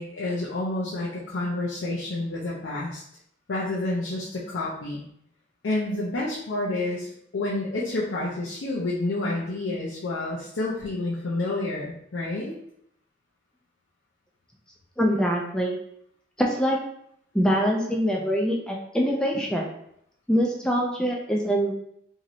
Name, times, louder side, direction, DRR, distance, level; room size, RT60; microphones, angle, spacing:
voice 1, 0.0-3.0 3.5-5.0 5.6-7.1 7.3-12.5, left 2 dB, 75° left, -5 dB, 0.6 m, -29 dB
voice 2, 15.0-15.8 16.4-16.8 17.3-19.7 20.3-21.7, equal, 5° left, -1 dB, 0.3 m, -24 dB
3.0 x 2.7 x 2.5 m, 0.72 s
head